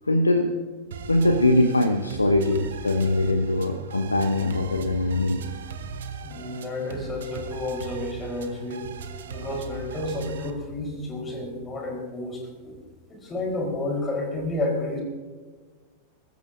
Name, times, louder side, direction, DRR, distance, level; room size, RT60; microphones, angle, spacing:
voice 1, 0.0-0.5 1.1-5.4, left 2 dB, 80° left, 7 dB, 0.9 m, -22 dB
sound 1, 0.9-10.5, right 6 dB, 60° right, 1.1 m, -38 dB
voice 2, 6.2-8.9 9.3-12.8 13.2-15.0, left 2 dB, 20° left, 1 dB, 4.3 m, -31 dB
24.0 x 14.5 x 2.7 m, 1.4 s
figure-of-eight pair, 90°, 0 cm